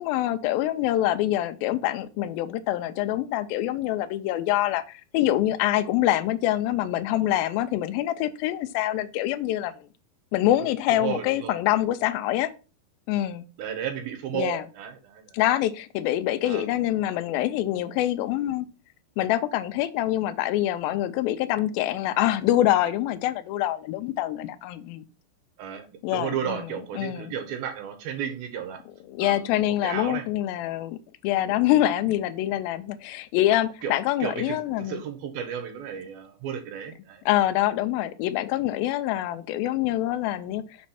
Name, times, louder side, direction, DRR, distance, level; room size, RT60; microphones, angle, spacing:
voice 1, 0.0-9.7 10.3-12.5 13.1-13.5 14.3-14.6 15.3-18.7 19.2-25.0 26.0-26.6 27.0-27.3 29.1-35.0 37.3-40.6, left 13 dB, 80° left, 2.2 m, -25 dB
voice 2, 10.6-11.6 13.6-15.4 16.4-16.6 25.6-25.9 26.1-28.8 29.2-30.2 31.5-31.6 33.8-33.9 34.2-37.2, right 9 dB, 75° right, 2.7 m, -33 dB
6.1 x 4.2 x 5.8 m
omnidirectional pair, 4.6 m